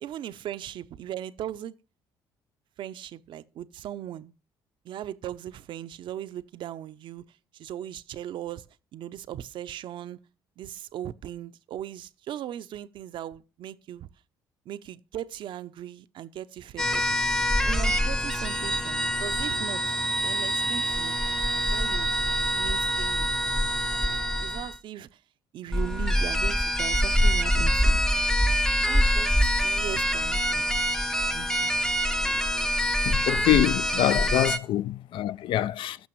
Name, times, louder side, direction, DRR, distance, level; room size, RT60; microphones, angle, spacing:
voice 1, 0.0-1.7 2.8-4.3 4.8-7.2 7.5-8.6 8.9-10.2 10.6-14.1 14.7-17.2 17.7-19.8 20.2-21.2 21.7-22.1 22.5-23.3 24.4-25.1 25.5-28.0 28.9-29.3 29.6-30.7 31.3-31.9 32.2-32.4, right 11 dB, 60° right, 0.6 m, -38 dB
sound 1, 16.8-24.8 25.7-34.6, equal, 5° left, 0.6 m, -25 dB
voice 2, 33.1-36.0, left 13 dB, 65° left, 0.4 m, -25 dB
14.5 x 6.2 x 3.1 m
supercardioid pair, 80°, 9 cm